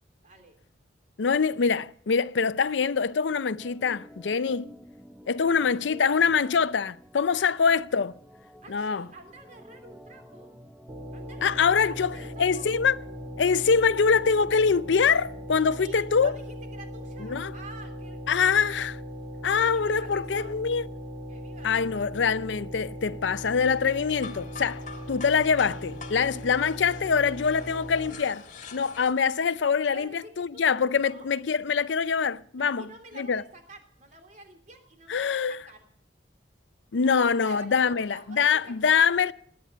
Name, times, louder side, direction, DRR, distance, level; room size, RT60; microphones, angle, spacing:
voice 1, 0.2-0.5 5.4-6.1 7.3-7.7 8.6-10.6 11.1-12.7 15.8-18.8 19.6-20.5 21.3-22.1 29.9-31.3 32.6-35.8 37.0-39.2, right 2 dB, 45° right, 3.2 m, -49 dB
voice 2, 1.2-4.7 5.3-8.1 8.7-9.1 11.4-13.0 13.4-16.3 17.2-17.5 18.3-18.9 19.4-20.9 21.6-24.8 25.1-28.4 28.7-32.9 33.1-33.4 35.1-35.6 36.9-39.3, left 6 dB, 85° left, 0.5 m, -24 dB
Organ, 3.6-15.7, equal, ahead, 0.6 m, -50 dB
sound 1, 10.9-28.1, equal, 25° right, 1.9 m, -39 dB
sound 2, 23.4-29.1, left 4 dB, 45° left, 1.7 m, -46 dB
19.5 x 9.7 x 6.8 m
head